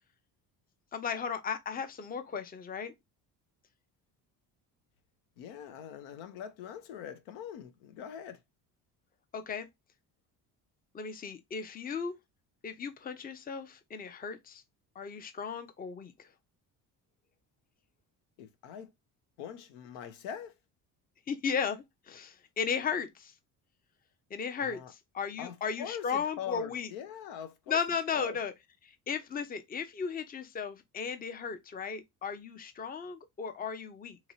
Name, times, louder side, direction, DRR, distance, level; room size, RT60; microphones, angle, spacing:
voice 1, 0.9-2.9 9.3-9.7 10.9-12.1 12.6-14.6 15.0-16.3 21.3-23.3 24.3-26.9 27.7-28.5 28.8-34.2, left 6 dB, 20° left, 0.5 m, -35 dB
voice 2, 5.4-8.4 18.4-18.9 19.4-20.5 24.6-24.9 25.4-27.8 28.1-28.4, left 9 dB, 80° left, 0.7 m, -43 dB
2.8 x 2.8 x 2.7 m
hypercardioid pair, 65°, 46 cm